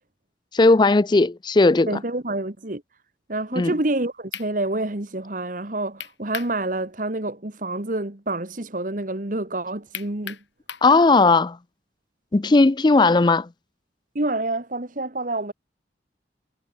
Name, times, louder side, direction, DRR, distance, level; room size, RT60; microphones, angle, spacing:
voice 1, 0.5-1.9 3.6-3.7 10.8-11.6 12.3-13.5, left 3 dB, 25° left, 0.4 m, -17 dB
voice 2, 1.9-2.8 3.3-10.4 14.1-15.5, right 2 dB, 45° right, 1.7 m, -27 dB
sound 1, 3.9-4.0 4.3-4.5 6.0-6.6 6.9-7.0 9.9-10.9, left 8 dB, 90° left, 4.5 m, -35 dB
head